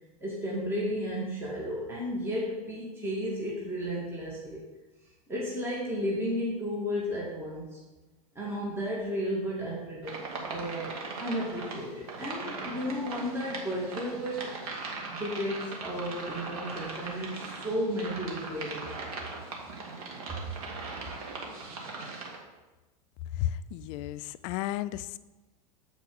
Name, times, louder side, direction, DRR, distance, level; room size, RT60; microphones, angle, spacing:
voice 1, 0.2-4.6 5.3-7.8 8.4-10.2 10.5-10.9 11.2-14.5 15.1-18.9, equal, 10° right, -5 dB, 1.9 m, -33 dB
sound 1, 10.0-22.4, right 3 dB, 70° right, 1.7 m, -39 dB
voice 2, 23.3-25.2, left 13 dB, 55° left, 13 dB, 0.4 m, -33 dB
8.2 x 4.5 x 4.8 m, 1.1 s
hypercardioid pair, 105°, 20 cm